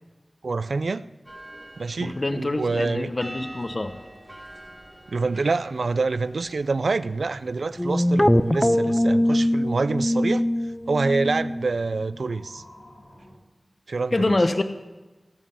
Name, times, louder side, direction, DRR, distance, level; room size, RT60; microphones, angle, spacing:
voice 1, 0.4-1.1 1.8-3.1 5.1-10.5 10.9-12.6 13.9-14.3, right 3 dB, 85° right, 16 dB, 0.4 m, -26 dB
sound 1, 1.3-8.7, right 1 dB, 20° right, 1.9 m, -46 dB
voice 2, 2.0-4.0 14.1-14.6, left 2 dB, 45° left, 9 dB, 0.7 m, -25 dB
sound 2, 2.1-13.3, equal, 70° left, 4.1 m, -52 dB
sound 3, 7.8-12.1, left 1 dB, 15° left, 0.4 m, -22 dB
17.5 x 7.5 x 5.7 m, 1.2 s
wide cardioid pair, 75°, 0 cm